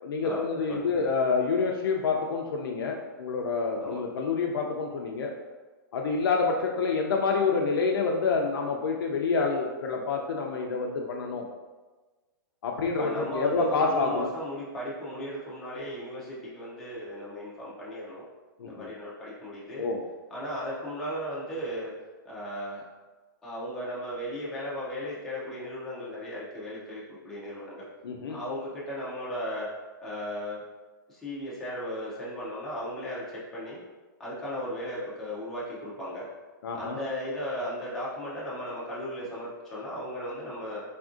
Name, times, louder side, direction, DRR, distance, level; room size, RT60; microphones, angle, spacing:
voice 1, 0.0-5.3 5.9-11.5 12.6-14.3 18.6-18.9 19.8-20.0 28.0-28.4 36.6-37.0, left 4 dB, 85° left, 1 dB, 0.4 m, -27 dB
voice 2, 12.9-18.2 18.6-19.9 20.3-21.9 22.2-22.8 23.4-27.9 28.3-29.7 30.0-30.6 31.1-33.8 34.2-36.3 36.7-40.8, equal, 5° left, -8 dB, 0.4 m, -36 dB
3.5 x 2.5 x 2.4 m, 1.3 s
hypercardioid pair, 170°, 12 cm